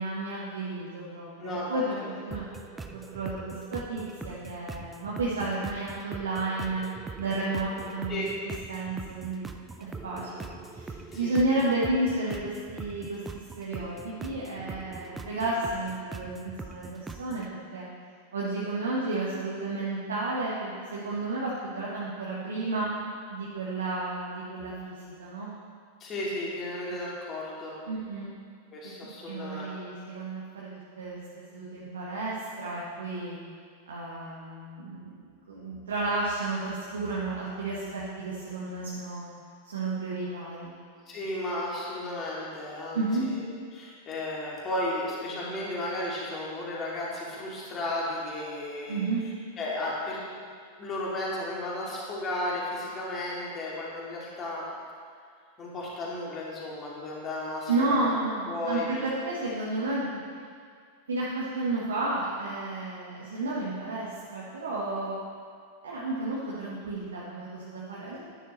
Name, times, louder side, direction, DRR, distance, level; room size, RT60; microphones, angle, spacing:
voice 1, 0.0-2.4 3.1-6.8 7.2-8.2 8.7-9.4 9.8-13.2 13.6-17.5 17.7-17.8 18.3-22.9 23.3-25.5 27.9-28.3 28.8-28.9 29.2-31.2 31.5-33.4 33.9-39.2 39.6-40.7 42.9-43.3 48.9-49.2 57.7-60.2 61.1-65.2 65.8-68.2, right 2 dB, 65° right, -6 dB, 1.4 m, -32 dB
voice 2, 1.4-1.8 8.1-8.3 11.1-11.5 26.0-27.8 28.7-29.8 41.1-50.2 50.8-54.7 55.6-58.1 58.5-59.3, left 1 dB, 25° left, -5 dB, 2.5 m, -34 dB
sound 1, 2.3-17.5, right 3 dB, 10° right, 0.5 m, -42 dB
11.0 x 10.0 x 3.1 m, 2.1 s
figure-of-eight pair, 90°, 0 cm